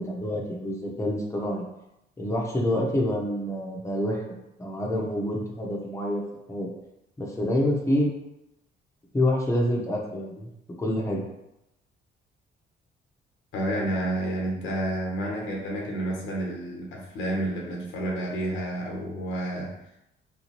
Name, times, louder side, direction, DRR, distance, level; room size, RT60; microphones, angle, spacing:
voice 1, 0.0-1.6 2.2-4.2 4.6-6.2 6.5-6.7 7.2-8.1 9.1-10.5 10.8-11.2, left 1 dB, 15° left, -2 dB, 0.8 m, -27 dB
voice 2, 13.5-19.7, right 1 dB, 90° left, -1 dB, 0.9 m, -30 dB
3.4 x 2.7 x 3.0 m, 0.88 s
cardioid pair, 90°, 20 cm